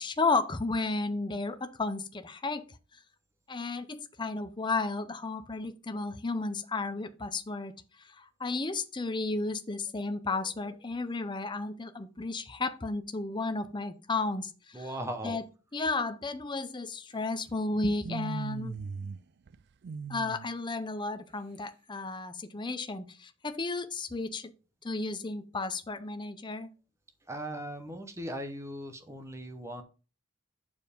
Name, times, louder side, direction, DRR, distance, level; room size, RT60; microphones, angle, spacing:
voice 1, 0.0-2.7 3.5-7.7 8.0-14.9 15.2-15.4 15.7-18.8 20.1-24.5 24.8-26.7, left 3 dB, 20° left, 9 dB, 0.6 m, -33 dB
voice 2, 14.7-15.4 27.3-29.8, right 1 dB, 15° right, 7 dB, 0.8 m, -38 dB
sound 1, 18.0-19.2 19.5-20.5, right 4 dB, 50° right, 0.3 m, -38 dB
7.3 x 4.6 x 5.1 m, 0.34 s
head